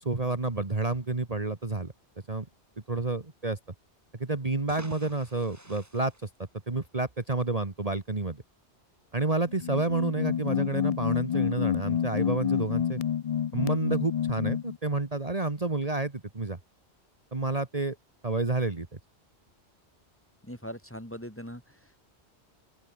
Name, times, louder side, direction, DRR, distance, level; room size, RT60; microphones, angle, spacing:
voice 1, 0.0-1.9 2.3-2.5 2.9-3.6 4.2-6.3 6.7-8.4 9.1-13.0 13.5-16.6 17.3-18.0 18.2-19.0, right 3 dB, 35° right, 1.9 m, -29 dB
sound 1, 4.5-7.1, right 1 dB, 15° right, 2.8 m, -49 dB
sound 2, 9.5-14.8, left 9 dB, 60° left, 0.4 m, -29 dB
voice 2, 20.4-21.8, equal, 10° left, 3.6 m, -41 dB
open air
omnidirectional pair, 1.1 m